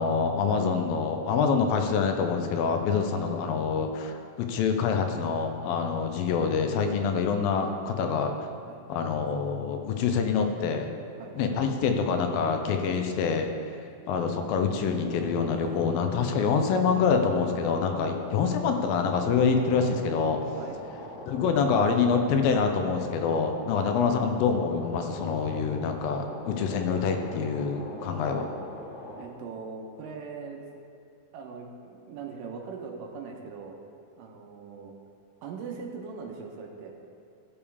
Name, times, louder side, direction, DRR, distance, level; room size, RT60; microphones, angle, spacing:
voice 1, 0.0-8.5 8.9-10.9 11.4-13.5 14.1-20.4 21.3-28.5, left 5 dB, 85° left, 5 dB, 2.6 m, -26 dB
sound 1, 14.8-29.2, left 1 dB, 60° left, 2.7 m, -42 dB
voice 2, 29.2-30.6 31.3-33.8 34.2-34.9 35.4-36.9, right 5 dB, 75° right, 1 dB, 2.4 m, -40 dB
15.5 x 7.1 x 3.5 m, 2.4 s
omnidirectional pair, 4.1 m